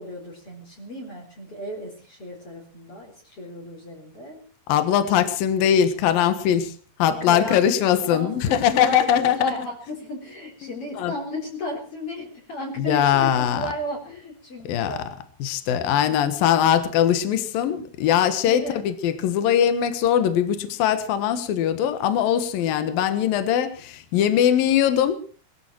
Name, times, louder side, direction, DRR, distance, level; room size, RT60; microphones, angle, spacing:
voice 1, 0.0-4.4 7.2-15.1 18.4-18.8, left 1 dB, 35° left, 4.5 m, -34 dB
voice 2, 4.7-6.7 7.0-9.7 10.6-11.1 12.8-13.7 14.6-15.1 15.4-25.2, left 9 dB, 70° left, 3.1 m, -21 dB
21.5 x 14.5 x 4.6 m
omnidirectional pair, 4.5 m